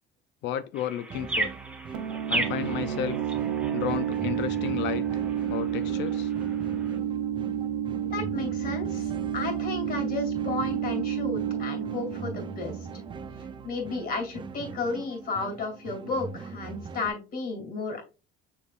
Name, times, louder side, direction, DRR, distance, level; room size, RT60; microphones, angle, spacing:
voice 1, 0.4-1.5 2.3-3.2 3.7-5.1 5.5-6.3, left 10 dB, 65° left, 12 dB, 0.4 m, -32 dB
sound 1, 0.7-7.0, right 2 dB, 5° right, 1.0 m, -36 dB
sound 2, 1.1-17.1, right 5 dB, 25° right, 0.4 m, -42 dB
sound 3, 1.9-13.4, right 10 dB, 90° right, 0.7 m, -30 dB
voice 2, 8.1-12.8 13.6-18.0, left 3 dB, 45° left, 2 dB, 2.4 m, -33 dB
6.4 x 3.4 x 2.4 m, 0.32 s
cardioid pair, 115°, 20 cm